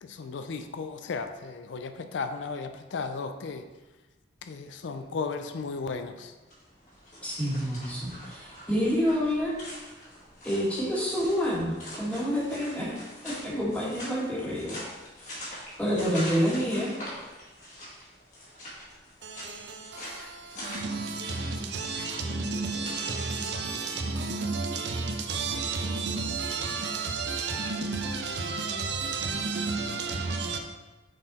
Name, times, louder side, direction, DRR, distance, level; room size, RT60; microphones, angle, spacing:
voice 1, 0.0-3.7 4.4-6.3, left 4 dB, 75° left, 0.4 m, -35 dB
sound 1, 6.4-24.0, equal, 40° left, 1.9 m, -44 dB
voice 2, 7.2-9.6 10.4-12.9 13.2-14.8 15.8-16.9, equal, 5° left, 1.7 m, -28 dB
voice 3, 19.2-30.6, right 4 dB, 65° right, 0.6 m, -32 dB
6.5 x 4.0 x 4.1 m
head